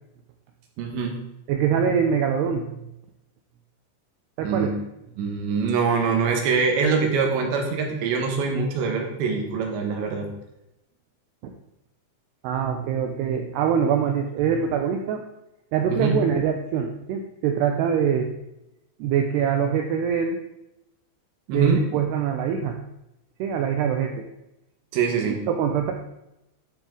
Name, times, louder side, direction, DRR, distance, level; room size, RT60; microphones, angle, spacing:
voice 1, 0.8-1.2 4.4-4.7 5.2-10.3 15.9-16.1 21.5-21.9 24.9-25.4, right 5 dB, 70° right, 2 dB, 3.3 m, -24 dB
voice 2, 1.5-2.7 4.4-4.7 11.4-11.5 12.4-15.2 15.7-18.3 19.0-20.4 21.5-22.8 23.4-24.3 25.2-25.9, right 7 dB, 90° right, 4 dB, 2.4 m, -24 dB
12.0 x 7.2 x 3.8 m, 0.89 s
omnidirectional pair, 5.6 m